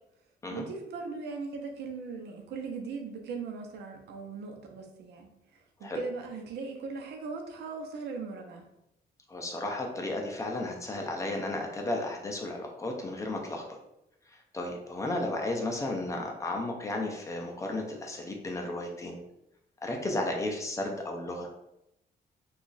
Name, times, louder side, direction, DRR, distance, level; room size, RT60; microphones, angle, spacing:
voice 1, 0.5-8.6, right 4 dB, 80° right, 3 dB, 0.6 m, -39 dB
voice 2, 9.3-13.8 14.3-19.2 19.8-21.5, left 2 dB, 20° left, 1 dB, 0.4 m, -34 dB
2.9 x 2.4 x 3.9 m, 0.85 s
cardioid pair, 175°, 17 cm